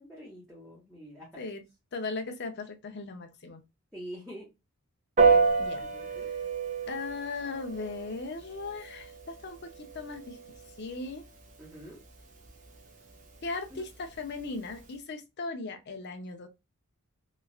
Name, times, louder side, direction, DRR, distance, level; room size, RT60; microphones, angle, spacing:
voice 1, 0.0-1.3 3.9-4.5 5.2-5.5 5.8-6.3 11.6-12.0 13.7-13.8, equal, ahead, 0.9 m, -45 dB
voice 2, 1.9-3.6 5.6-5.8 6.1-6.2 6.9-10.4 10.8-11.2 13.4-16.5, left 3 dB, 50° left, 0.5 m, -38 dB
Piano, 5.2-14.9, right 4 dB, 35° right, 0.6 m, -31 dB
3.0 x 2.4 x 2.3 m
head